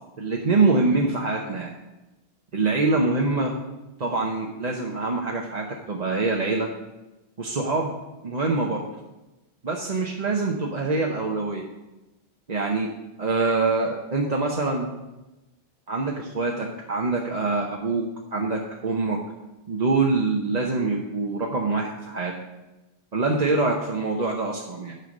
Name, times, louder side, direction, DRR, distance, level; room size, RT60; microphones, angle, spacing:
voice 1, 0.2-1.7 2.5-3.5 4.0-6.7 7.4-7.9 8.2-8.8 9.6-11.7 12.5-12.9 13.2-14.9 15.9-19.2 19.7-22.3 23.1-24.9, right 3 dB, 45° right, -1 dB, 0.9 m, -25 dB
9.5 x 5.6 x 6.5 m, 1.0 s
omnidirectional pair, 1.1 m